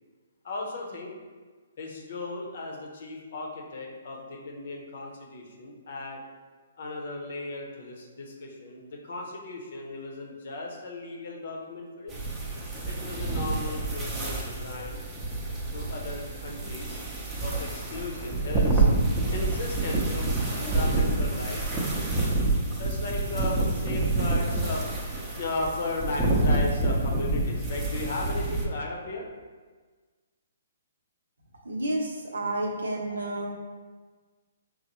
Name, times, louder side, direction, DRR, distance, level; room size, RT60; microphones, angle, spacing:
voice 1, 0.4-1.1 1.8-6.2 6.8-12.2 12.8-15.0 15.7-17.0 17.4-18.9 19.3-21.7 22.8-24.8 25.3-29.3, left 2 dB, 55° left, 0 dB, 0.7 m, -36 dB
sound 1, 12.1-28.7, right 2 dB, 15° right, 0.6 m, -28 dB
voice 2, 31.6-33.5, right 1 dB, 80° right, 0 dB, 0.7 m, -30 dB
5.3 x 2.1 x 3.0 m, 1.4 s
figure-of-eight pair, 130°, 0 cm